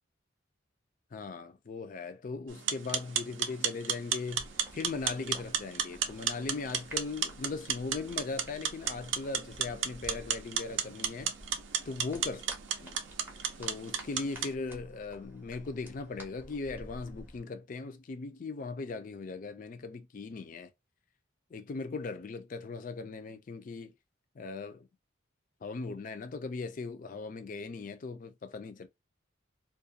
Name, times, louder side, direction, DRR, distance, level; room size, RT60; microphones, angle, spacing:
voice 1, 1.1-4.5 4.7-11.3 11.9-12.4 12.8-13.0 13.6-20.7 21.5-23.9 24.4-24.9 25.6-28.9, left 3 dB, 40° left, 0.3 m, -39 dB
sound 1, 2.5-14.5, right 8 dB, 65° right, 0.5 m, -34 dB
sound 2, 4.3-17.4, equal, 10° right, 0.5 m, -52 dB
2.4 x 2.2 x 2.6 m
head